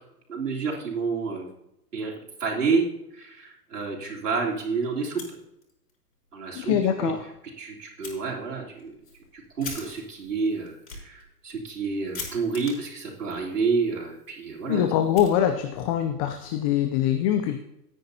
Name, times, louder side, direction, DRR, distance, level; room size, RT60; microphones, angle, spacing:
voice 1, 0.3-1.5 1.9-2.1 2.4-2.9 3.1-5.2 6.3-7.1 7.6-8.9 9.3-14.8, right 4 dB, 80° right, -5 dB, 3.6 m, -29 dB
Fire, 5.0-5.9 6.3-6.4 6.8-6.9 8.0-8.2 8.7-15.9, left 3 dB, 80° left, 5.2 m, -44 dB
voice 2, 6.5-7.3 14.7-17.6, left 10 dB, 25° left, 8 dB, 0.5 m, -24 dB
18.5 x 9.8 x 2.8 m, 0.85 s
hypercardioid pair, 120°, 46 cm